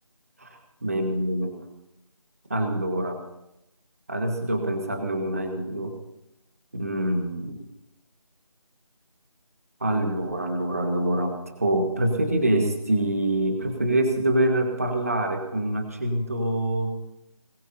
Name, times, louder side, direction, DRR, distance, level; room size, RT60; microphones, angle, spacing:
voice 1, 0.4-1.6 2.5-3.2 4.1-5.9 6.7-7.6 9.8-16.9, right 1 dB, 25° right, 4 dB, 1.6 m, -25 dB
21.0 x 21.0 x 2.8 m, 0.84 s
figure-of-eight pair, 175°, 19 cm